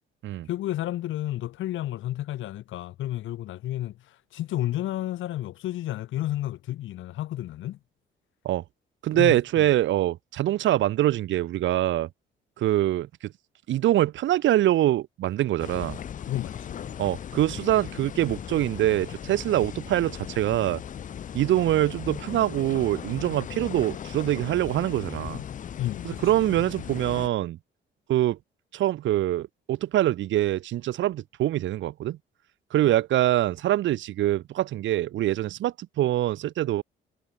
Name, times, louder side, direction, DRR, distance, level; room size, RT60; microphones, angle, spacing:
voice 1, 0.5-3.9 4.3-7.8 9.1-9.7 16.3-17.1 25.8-26.2 26.5-26.6, left 14 dB, 80° left, 1.5 m, -31 dB
voice 2, 9.0-12.1 12.6-13.3 13.7-16.0 17.0-20.8 21.3-25.4 26.0-27.6 28.1-28.4 28.7-32.2 32.7-36.8, right 13 dB, 75° right, 0.8 m, -24 dB
sound 1, 15.6-27.3, left 9 dB, 40° left, 0.5 m, -38 dB
cardioid pair, 90°, 20 cm